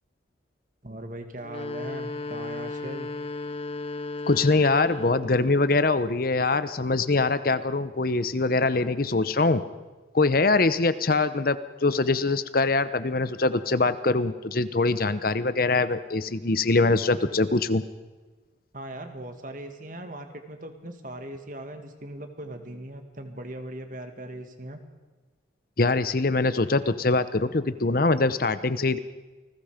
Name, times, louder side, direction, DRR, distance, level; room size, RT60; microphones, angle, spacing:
voice 1, 0.8-3.1 18.7-24.8, right 1 dB, 45° right, 6 dB, 2.2 m, -39 dB
sound 1, 1.4-5.4, left 3 dB, 30° left, 1.5 m, -35 dB
voice 2, 4.3-9.6 10.1-17.8 25.8-29.0, left 3 dB, 50° left, 13 dB, 0.8 m, -23 dB
29.0 x 20.0 x 5.1 m, 1.2 s
head